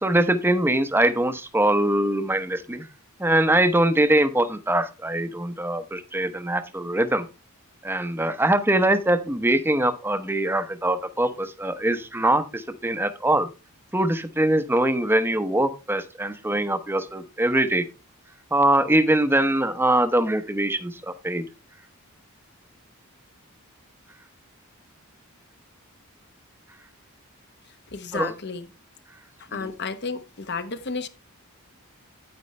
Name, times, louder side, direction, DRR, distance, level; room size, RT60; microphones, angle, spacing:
voice 1, 0.0-2.9 3.2-7.3 7.8-13.5 13.9-17.9 18.5-21.4 28.1-28.3, right 1 dB, 10° right, 0.8 m, -22 dB
voice 2, 27.9-28.7 29.5-31.1, left 4 dB, 50° left, 1.0 m, -32 dB
9.6 x 9.4 x 3.2 m
head